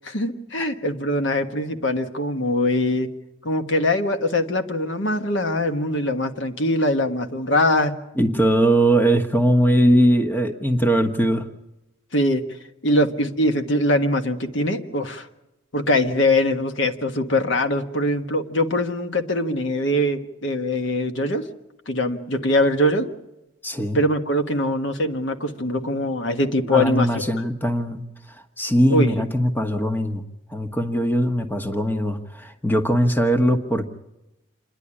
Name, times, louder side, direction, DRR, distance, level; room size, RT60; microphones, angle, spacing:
voice 1, 0.0-3.1 3.4-7.9 12.1-12.4 12.8-15.3 15.7-21.4 21.9-23.1 23.9-27.1 28.9-29.1, left 1 dB, 80° left, 7 dB, 1.5 m, -22 dB
voice 2, 8.2-11.5 23.6-24.0 26.7-28.0 28.6-30.2 30.5-33.8, equal, 10° left, 6 dB, 1.2 m, -20 dB
27.5 x 11.0 x 9.9 m, 0.96 s
head